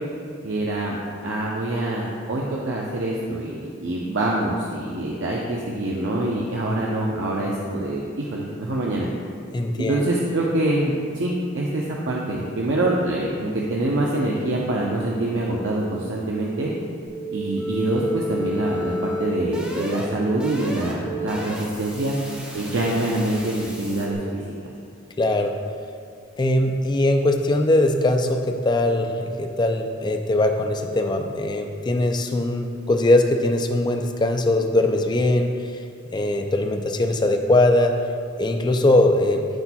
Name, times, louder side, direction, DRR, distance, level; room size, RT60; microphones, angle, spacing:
voice 1, 0.4-9.1 9.8-16.7 17.3-22.2 22.5-24.4, right 1 dB, 80° right, -3 dB, 0.7 m, -25 dB
voice 2, 9.5-10.0 25.2-25.5 26.4-35.5 36.1-37.9 38.4-39.5, left 1 dB, 25° left, 4 dB, 0.4 m, -21 dB
sound 1, 17.1-24.1, equal, 5° right, 0.9 m, -32 dB
12.5 x 4.2 x 2.3 m, 2.3 s
head